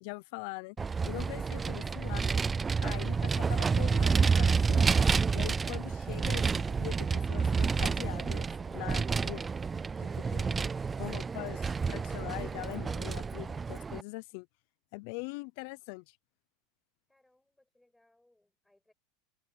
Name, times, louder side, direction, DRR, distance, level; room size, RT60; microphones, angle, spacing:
voice 1, 0.0-0.8 1.0-2.2 2.8-4.9 5.3-9.5 10.2-14.5 14.9-16.2, left 27 dB, 60° left, 0.5 m, -42 dB
Vehicle, 0.8-14.0, right 5 dB, 15° right, 0.3 m, -29 dB
voice 2, 17.1-18.9, left 1 dB, 5° left, 7.4 m, -70 dB
supercardioid pair, 155°, 0 cm